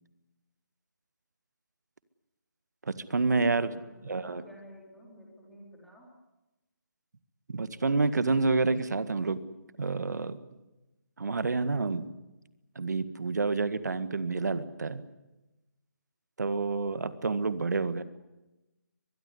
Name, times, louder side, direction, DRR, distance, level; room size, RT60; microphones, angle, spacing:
voice 1, 2.9-4.4 7.5-9.4 9.8-10.4 11.2-12.1 12.8-15.0 16.4-18.0, right 3 dB, 65° right, 13 dB, 1.9 m, -28 dB
voice 2, 3.6-6.1, equal, ahead, -4 dB, 4.3 m, -52 dB
23.5 x 21.5 x 9.8 m, 1.0 s
hypercardioid pair, 170°, 10 cm